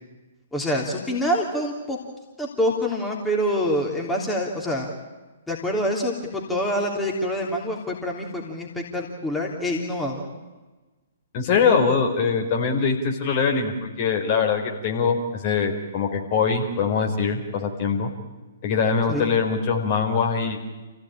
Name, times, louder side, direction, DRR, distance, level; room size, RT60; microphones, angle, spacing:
voice 1, 0.5-2.0 2.4-4.9 5.5-10.3 19.1-19.3, equal, 5° left, -2 dB, 3.3 m, -26 dB
voice 2, 11.3-18.1 18.6-20.6, left 5 dB, 40° left, 3 dB, 4.3 m, -23 dB
28.5 x 16.5 x 8.9 m, 1.2 s
figure-of-eight pair, 120°, 0 cm